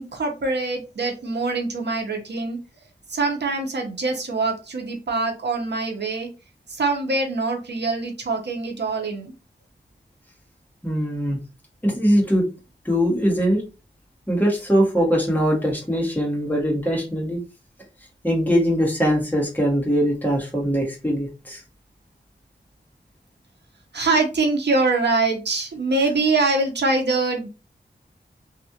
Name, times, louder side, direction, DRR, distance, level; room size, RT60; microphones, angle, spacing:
voice 1, 0.0-2.6 3.1-6.3 6.7-9.3 23.9-27.5, right 3 dB, 75° right, 3 dB, 0.8 m, -24 dB
voice 2, 10.8-11.4 11.8-12.4 12.8-13.6 14.3-17.4 18.2-21.6, equal, 10° left, -2 dB, 1.6 m, -21 dB
3.2 x 2.5 x 2.8 m, 0.30 s
wide cardioid pair, 75°, 18 cm